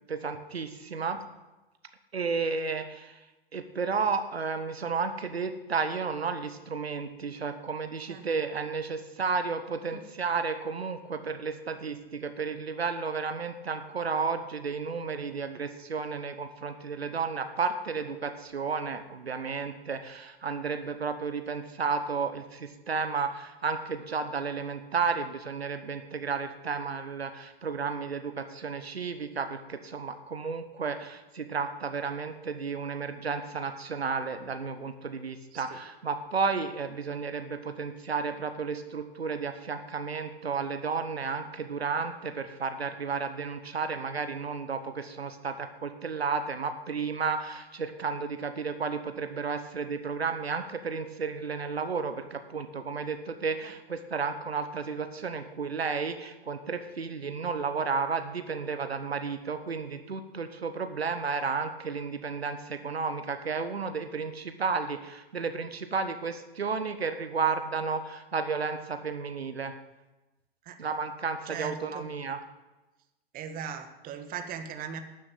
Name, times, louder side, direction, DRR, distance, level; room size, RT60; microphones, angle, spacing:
voice 1, 0.1-1.2 2.1-3.2 3.5-69.7 70.8-72.4, right 5 dB, 80° right, 8 dB, 1.3 m, -32 dB
voice 2, 71.5-72.1 73.3-75.0, right 7 dB, 30° right, 8 dB, 1.5 m, -39 dB
12.5 x 7.6 x 8.9 m, 1.1 s
figure-of-eight pair, 100°, 30 cm